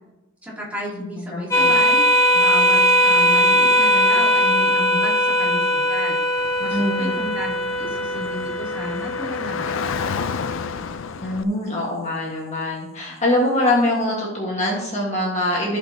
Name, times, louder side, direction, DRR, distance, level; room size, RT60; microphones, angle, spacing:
voice 1, 0.4-2.0 2.3-10.5, left 1 dB, 5° right, -6 dB, 2.8 m, -33 dB
voice 2, 0.9-1.7 6.7-7.2 11.2-15.8, left 1 dB, 35° left, -3 dB, 1.6 m, -23 dB
sound 1, 1.5-10.5, equal, 15° left, 1.2 m, -19 dB
Car / Traffic noise roadway noise, 6.4-11.4, left 6 dB, 65° left, 0.4 m, -31 dB
15.5 x 5.3 x 2.9 m, 1.0 s
head